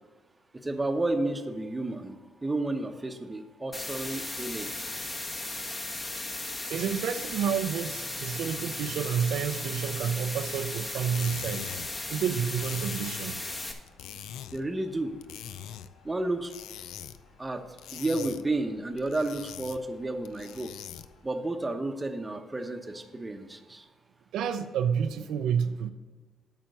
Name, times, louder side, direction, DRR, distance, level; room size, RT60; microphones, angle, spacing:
voice 1, 0.6-2.2 2.4-4.7 14.5-15.2 16.0-16.5 17.4-17.6 17.9-20.7 21.2-23.8, right 2 dB, 15° right, 6 dB, 0.9 m, -31 dB
sound 1, 3.7-13.7, left 2 dB, 25° left, 1.3 m, -36 dB
voice 2, 6.7-11.7 12.1-13.4 24.3-25.9, right 8 dB, 80° right, 8 dB, 0.5 m, -29 dB
sound 2, 10.9-21.3, left 10 dB, 85° left, 0.4 m, -44 dB
8.8 x 5.9 x 6.6 m, 1.4 s
cardioid pair, 90°, 0 cm